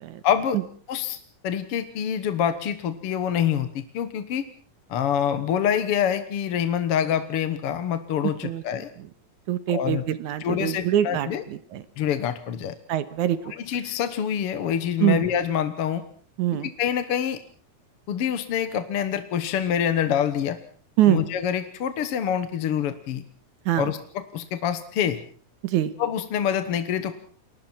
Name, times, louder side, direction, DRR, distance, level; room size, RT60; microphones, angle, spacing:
voice 1, 0.2-1.2 1.4-4.5 4.9-8.9 9.7-10.0 10.4-11.4 12.0-12.8 13.6-16.0 16.6-17.4 18.1-20.6 21.1-23.2 23.8-25.2 26.0-27.2, left 9 dB, 60° left, 10 dB, 1.9 m, -26 dB
voice 2, 9.5-11.8 12.9-13.4 15.0-15.2 16.4-16.7 21.0-21.2 23.7-23.9 25.6-25.9, right 12 dB, 80° right, 13 dB, 2.6 m, -24 dB
29.5 x 22.0 x 4.4 m, 0.44 s
omnidirectional pair, 3.4 m